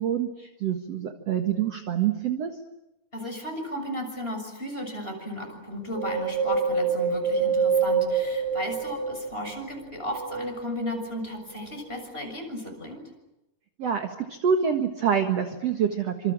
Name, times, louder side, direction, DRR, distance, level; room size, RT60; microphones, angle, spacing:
voice 1, 0.0-2.5 13.8-16.3, right 8 dB, 55° right, 6 dB, 2.1 m, -26 dB
voice 2, 3.1-13.0, equal, 15° left, 3 dB, 6.7 m, -35 dB
Wind, 5.9-9.5 10.0-11.3 11.8-11.9, right 5 dB, 35° right, 7.3 m, -26 dB
28.0 x 26.5 x 7.5 m, 0.95 s
omnidirectional pair, 4.5 m